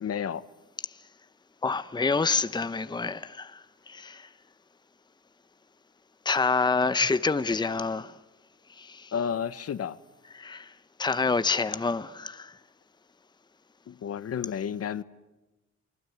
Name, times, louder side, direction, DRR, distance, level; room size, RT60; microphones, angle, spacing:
voice 1, 0.0-0.4 9.1-10.0 13.9-15.0, left 8 dB, 55° left, 1.1 m, -31 dB
voice 2, 1.6-4.3 6.2-8.2 8.7-9.1 10.3-12.6, left 4 dB, 15° left, 0.9 m, -28 dB
29.0 x 21.5 x 9.4 m
cardioid pair, 90°, 30 cm